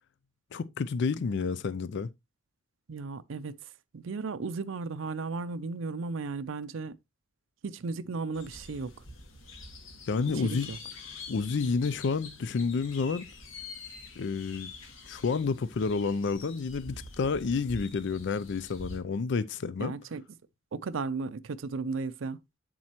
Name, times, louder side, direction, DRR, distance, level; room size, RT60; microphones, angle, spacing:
voice 1, 0.5-2.1 10.1-10.7 11.3-13.2 14.2-14.7 15.1-19.9, left 4 dB, 60° left, 0.4 m, -30 dB
voice 2, 2.9-7.0 7.6-9.0 10.3-10.8 19.8-20.2 20.7-22.4, right 4 dB, 70° right, 0.5 m, -35 dB
sound 1, 8.3-19.0, left 3 dB, 80° left, 2.2 m, -46 dB
7.6 x 7.4 x 2.9 m
head